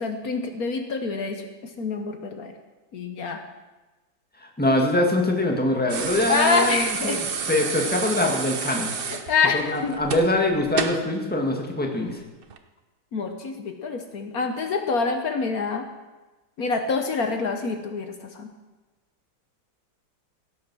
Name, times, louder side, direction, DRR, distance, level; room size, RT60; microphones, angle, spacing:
voice 1, 0.0-1.4 1.8-2.5 2.9-3.4 6.3-7.2 9.3-9.9 13.1-15.9 16.6-18.5, left 4 dB, 55° left, 6 dB, 1.4 m, -26 dB
voice 2, 4.6-8.9 9.5-12.2, left 1 dB, 5° left, 1 dB, 1.6 m, -23 dB
sound 1, 5.9-11.1 12.4-12.6, right 5 dB, 45° right, 0.7 m, -30 dB
17.0 x 8.5 x 6.1 m, 1.2 s
omnidirectional pair, 2.0 m